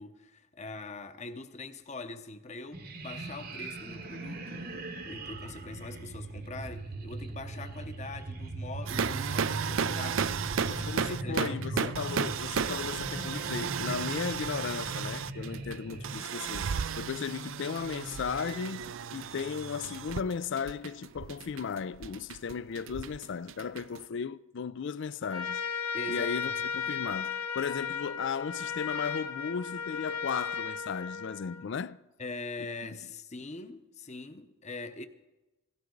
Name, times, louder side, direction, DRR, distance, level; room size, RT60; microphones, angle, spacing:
voice 1, 0.0-12.0 25.9-26.6 32.2-35.0, left 3 dB, 35° left, 0.9 m, -43 dB
sound 1, 2.7-16.2, right 2 dB, 45° right, 1.0 m, -39 dB
sound 2, 8.9-24.0, right 7 dB, 65° right, 0.4 m, -34 dB
voice 2, 10.7-16.7 17.0-25.6 25.9-32.0, left 6 dB, 60° left, 0.4 m, -36 dB
Trumpet, 25.2-31.7, left 6 dB, 80° left, 1.7 m, -35 dB
17.0 x 16.0 x 3.9 m
head